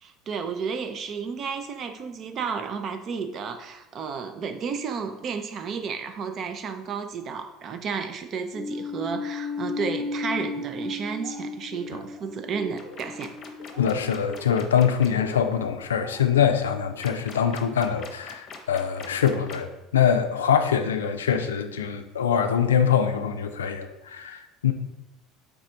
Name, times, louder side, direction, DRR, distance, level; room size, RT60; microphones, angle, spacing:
voice 1, 0.0-13.3, right 6 dB, 45° right, 8 dB, 0.4 m, -32 dB
sound 1, 8.5-14.9, left 3 dB, ahead, 0.6 m, -35 dB
Laughter, 11.0-11.4 11.7-13.1 13.4-13.8 14.1-17.0, right 1 dB, 65° right, 0.9 m, -44 dB
sound 2, 12.8-15.1 17.0-19.7, left 5 dB, 45° left, 0.7 m, -43 dB
voice 2, 13.8-24.7, left 8 dB, 90° left, 7 dB, 0.3 m, -24 dB
3.4 x 2.5 x 4.3 m, 1.0 s
hypercardioid pair, 75°, 0 cm